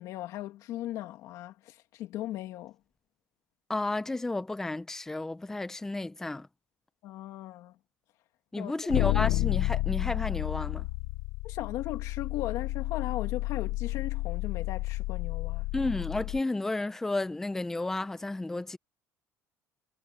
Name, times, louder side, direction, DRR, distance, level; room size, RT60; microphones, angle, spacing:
voice 1, 0.0-2.8 7.0-7.7 8.6-8.7 11.4-15.7, left 14 dB, 60° left, 2.3 m, -37 dB
voice 2, 3.7-6.5 8.5-10.9 15.7-18.8, left 2 dB, 5° left, 0.7 m, -32 dB
sound 1, 8.9-16.4, left 19 dB, 80° left, 0.8 m, -31 dB
cardioid pair, 165°, 6 cm